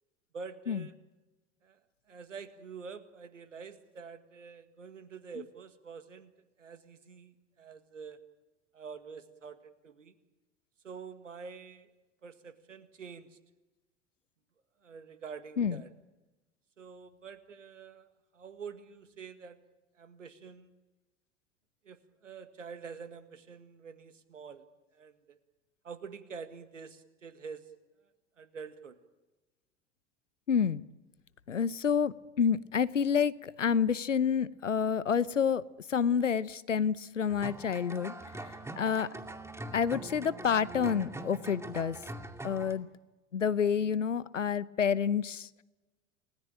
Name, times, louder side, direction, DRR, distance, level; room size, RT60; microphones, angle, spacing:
voice 1, 0.3-0.9 1.6-1.8 2.1-6.3 6.6-8.2 8.7-10.2 10.8-11.9 12.2-13.4 14.8-15.9 16.8-19.6 20.0-20.7 21.8-24.6 24.9-25.4 25.8-27.7 28.4-29.0, right 5 dB, 85° right, 11 dB, 2.0 m, -47 dB
voice 2, 30.5-30.8 31.5-35.6 35.9-38.1 38.8-39.1 39.7-42.0 42.4-42.9 43.3-45.5, left 7 dB, 90° left, 19 dB, 0.9 m, -28 dB
sound 1, 37.3-42.7, right 2 dB, 5° right, 2.4 m, -43 dB
29.5 x 19.5 x 8.8 m, 1.1 s
figure-of-eight pair, 80°, 36 cm